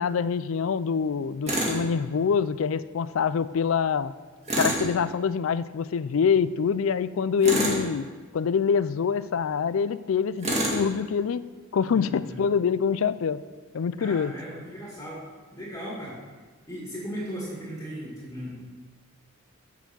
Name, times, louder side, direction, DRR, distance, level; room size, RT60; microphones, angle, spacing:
voice 1, 0.0-4.1 4.6-8.1 8.3-11.5 11.7-13.4 13.7-14.3, left 6 dB, 75° left, 16 dB, 0.4 m, -25 dB
Tools, 1.5-1.8 4.5-4.9 7.4-7.9 10.4-10.8, right 1 dB, 30° right, 1.9 m, -26 dB
voice 2, 11.9-12.4 14.0-15.2 15.5-16.2 16.7-18.5, equal, 15° left, -6 dB, 2.2 m, -37 dB
8.1 x 7.0 x 7.1 m, 1.4 s
head